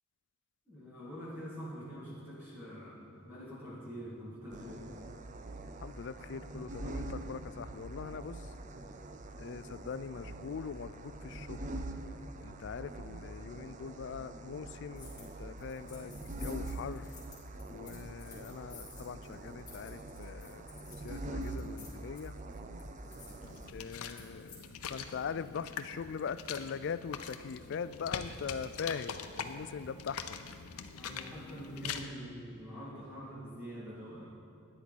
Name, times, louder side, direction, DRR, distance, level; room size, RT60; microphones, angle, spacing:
voice 1, 0.7-4.8 30.9-34.3, equal, 10° right, -8 dB, 2.4 m, -45 dB
sound 1, 4.5-23.7, right 2 dB, 35° right, 0.5 m, -44 dB
voice 2, 5.8-8.5 9.4-11.7 12.4-17.1 17.7-20.6 21.0-22.4 23.7-30.4, left 6 dB, 55° left, 15 dB, 0.3 m, -41 dB
sound 2, 14.9-15.3 15.6-24.6, left 4 dB, 20° left, 3.1 m, -55 dB
sound 3, 23.4-32.0, left 6 dB, 90° left, 0.7 m, -43 dB
13.0 x 10.0 x 4.1 m, 2.8 s
head